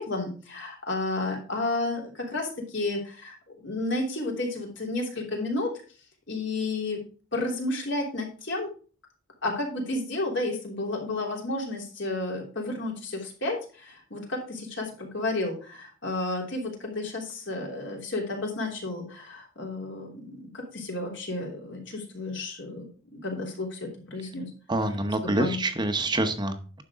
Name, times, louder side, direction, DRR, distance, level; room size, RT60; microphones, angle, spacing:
voice 1, 0.0-2.5 2.7-5.7 6.3-7.0 7.3-8.7 9.4-22.9 23.1-24.5 25.2-25.6, left 2 dB, 65° left, 0 dB, 3.2 m, -32 dB
voice 2, 24.7-26.8, right 2 dB, 25° right, 7 dB, 0.9 m, -27 dB
10.0 x 6.6 x 3.6 m, 0.38 s
head